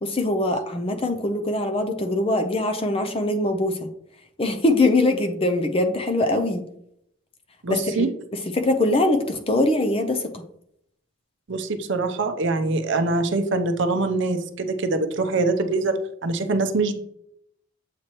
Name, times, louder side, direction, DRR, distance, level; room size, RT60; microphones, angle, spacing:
voice 1, 0.0-3.9 4.4-6.6 7.7-8.0 8.3-10.3, left 2 dB, 25° left, 6 dB, 0.5 m, -22 dB
voice 2, 7.6-8.1 11.5-17.0, right 3 dB, 55° right, 7 dB, 0.6 m, -24 dB
7.5 x 4.5 x 2.9 m, 0.73 s
head